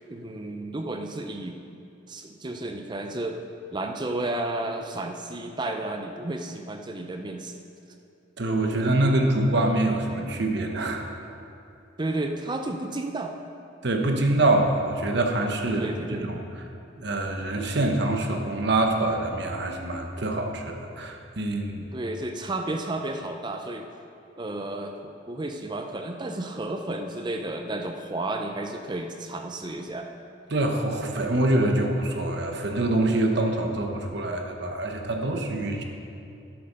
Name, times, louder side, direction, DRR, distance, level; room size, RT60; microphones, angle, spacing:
voice 1, 0.1-1.6 2.1-3.4 3.7-7.6 12.0-13.3 15.7-16.3 21.9-23.9 24.4-30.1, right 2 dB, 25° right, 4 dB, 0.5 m, -32 dB
voice 2, 8.4-11.0 13.8-16.4 17.0-21.9 30.5-35.8, right 2 dB, 60° right, 3 dB, 1.1 m, -25 dB
13.0 x 7.8 x 5.4 m, 2.7 s
head